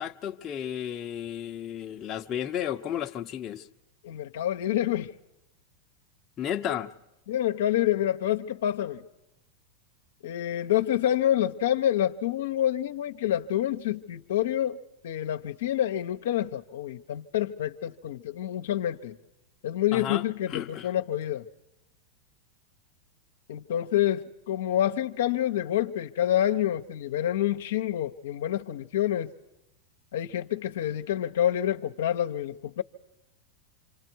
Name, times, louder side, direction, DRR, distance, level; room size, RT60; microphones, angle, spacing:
voice 1, 0.0-3.7 6.4-6.9 19.9-20.9, left 10 dB, 35° left, 1.0 m, -33 dB
voice 2, 4.0-5.1 7.3-9.0 10.2-14.8 15.0-19.2 19.6-21.5 23.5-29.3 30.1-32.8, left 11 dB, 75° left, 1.0 m, -27 dB
27.0 x 26.5 x 4.7 m
hypercardioid pair, 105°, 0 cm